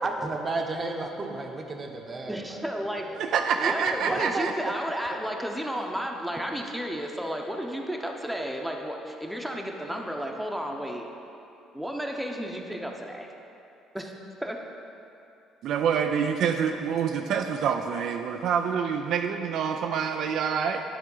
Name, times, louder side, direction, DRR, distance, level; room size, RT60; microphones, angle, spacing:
voice 1, 0.0-2.6 3.0-3.1 4.1-4.5, right 3 dB, 35° right, 3 dB, 0.9 m, -32 dB
voice 2, 2.3-3.1 3.6-11.1 11.7-13.3 13.9-14.1 14.4-14.6, equal, 5° right, 1 dB, 0.8 m, -32 dB
voice 3, 3.3-4.5 15.6-20.8, right 7 dB, 65° right, 4 dB, 0.4 m, -26 dB
10.0 x 3.5 x 5.5 m, 2.7 s
supercardioid pair, 75°, 0 cm